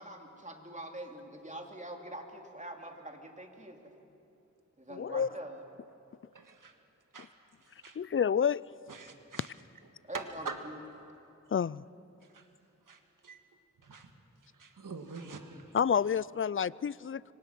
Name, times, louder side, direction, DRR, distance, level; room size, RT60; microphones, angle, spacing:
voice 1, 0.0-4.0 4.8-5.6 10.0-10.8, right 1 dB, 25° right, 2 dB, 3.2 m, -44 dB
voice 2, 4.9-5.3 8.0-8.6 11.5-11.8 15.7-17.3, left 7 dB, 40° left, 21 dB, 0.4 m, -29 dB
voice 3, 6.3-6.7 7.1-7.3 7.6-8.0 8.9-9.5 10.1-10.6 12.3-12.5 12.9-13.4 13.8-14.1 14.5-15.6, right 4 dB, 85° right, 6 dB, 1.8 m, -44 dB
25.5 x 24.5 x 6.1 m, 2.7 s
cardioid pair, 45°, 31 cm